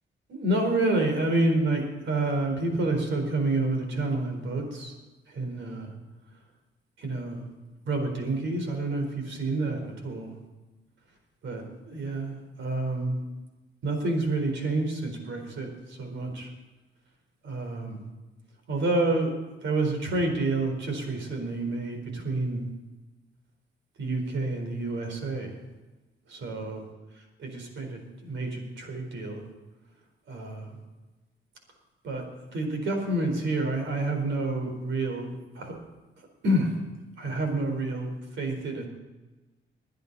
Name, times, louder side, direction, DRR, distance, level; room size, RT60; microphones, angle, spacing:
voice 1, 0.3-4.9 5.3-5.9 7.0-7.4 7.8-10.4 11.4-13.2 13.8-16.5 17.4-18.0 18.7-19.3 19.6-22.6 24.0-25.6 26.3-26.8 27.4-29.4 30.3-30.8 32.0-32.3 32.5-35.8 36.2-36.8 37.2-38.9, right 2 dB, 70° right, 4 dB, 4.4 m, -29 dB
22.0 x 9.5 x 4.1 m, 1.1 s
cardioid pair, 90°, 20 cm